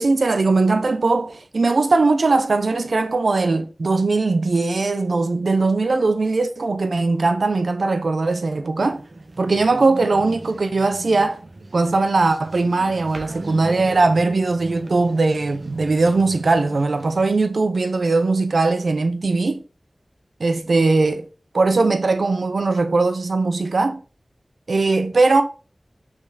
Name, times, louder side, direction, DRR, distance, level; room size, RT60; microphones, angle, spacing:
voice 1, 0.0-9.0 9.4-11.4 11.7-19.6 20.4-21.3 21.5-24.0 24.7-25.4, right 3 dB, 85° right, 0.7 m, -19 dB
sound 1, 8.8-17.4, right 2 dB, 60° right, 1.1 m, -38 dB
5.9 x 4.3 x 3.9 m
wide cardioid pair, 50°, 0 cm